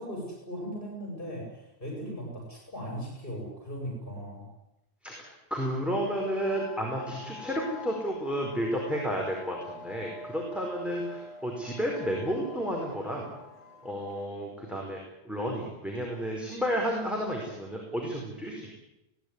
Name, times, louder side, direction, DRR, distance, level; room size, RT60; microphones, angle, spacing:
voice 1, 0.0-4.4, equal, 55° left, -1 dB, 6.9 m, -38 dB
voice 2, 5.0-13.3 13.8-15.0 15.2-18.8, equal, ahead, -2 dB, 4.8 m, -32 dB
sound 1, 5.9-14.3, left 4 dB, 30° left, 3.9 m, -46 dB
21.5 x 18.0 x 9.8 m, 0.91 s
omnidirectional pair, 1.1 m